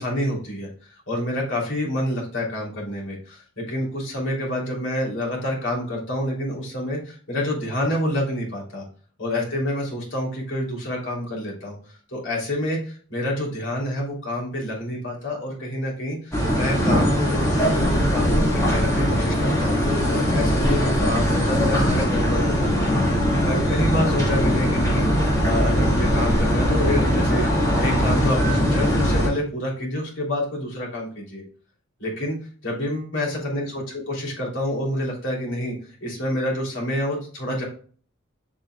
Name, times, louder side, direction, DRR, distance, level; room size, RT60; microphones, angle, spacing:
voice 1, 0.0-8.8 9.2-11.8 12.1-19.8 20.1-31.4 32.0-32.4 32.6-35.7 36.0-37.6, left 1 dB, 60° left, -3 dB, 3.3 m, -28 dB
sound 1, 16.3-29.3, equal, 15° left, 2.0 m, -21 dB
7.3 x 6.4 x 2.4 m, 0.43 s
head